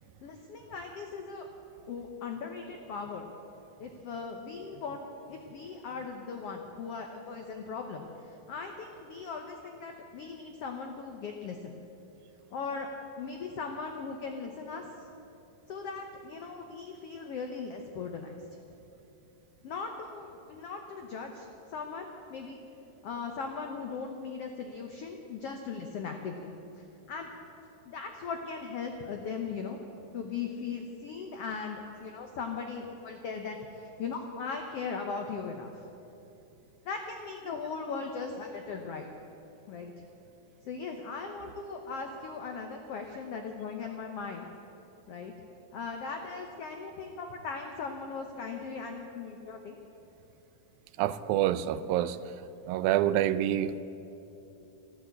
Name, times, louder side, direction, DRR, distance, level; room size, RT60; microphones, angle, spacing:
voice 1, 0.2-1.5 1.9-3.3 3.8-11.8 12.5-12.9 13.2-14.9 15.7-18.6 19.6-22.6 23.0-27.3 27.8-29.8 30.1-35.7 36.8-39.1 39.7-39.9 40.6-44.5 45.1-45.3 45.7-49.8, left 5 dB, 85° left, 4 dB, 1.3 m, -39 dB
voice 2, 51.0-52.2 52.7-53.8, right 12 dB, 85° right, 14 dB, 2.3 m, -27 dB
13.5 x 12.5 x 8.3 m, 2.9 s
omnidirectional pair, 4.1 m